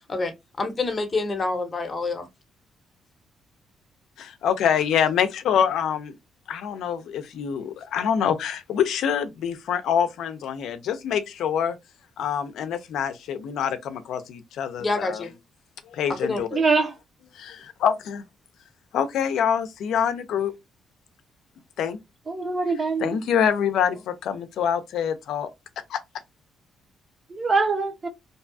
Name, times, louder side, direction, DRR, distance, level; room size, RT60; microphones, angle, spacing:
voice 1, 0.6-2.3 14.8-15.3 16.2-16.4, left 3 dB, 30° left, 0.7 m, -27 dB
voice 2, 4.4-6.1 6.5-11.8 12.2-15.2 15.9-16.6 17.3-18.2 18.9-20.5 21.8-22.0 23.0-25.5 25.9-26.0, left 8 dB, 80° left, 0.4 m, -25 dB
voice 3, 16.5-16.9 22.3-23.1 27.3-28.1, right 4 dB, 35° right, 0.8 m, -23 dB
2.6 x 2.3 x 2.5 m
cardioid pair, 90°, 0 cm